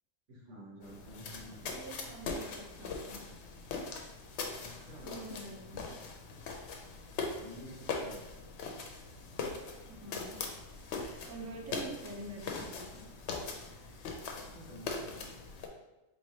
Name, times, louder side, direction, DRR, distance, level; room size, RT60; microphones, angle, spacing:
voice 1, 0.3-1.8 4.6-5.2 7.2-8.2 14.3-15.4, right 1 dB, 85° right, -3 dB, 1.4 m, -51 dB
sound 1, 0.8-15.7, left 4 dB, 70° left, 0.9 m, -41 dB
voice 2, 1.7-3.3 5.0-5.9 9.8-10.4 11.3-13.1, right 2 dB, 25° right, -1 dB, 0.4 m, -46 dB
4.4 x 3.1 x 2.7 m, 1.0 s
omnidirectional pair, 1.2 m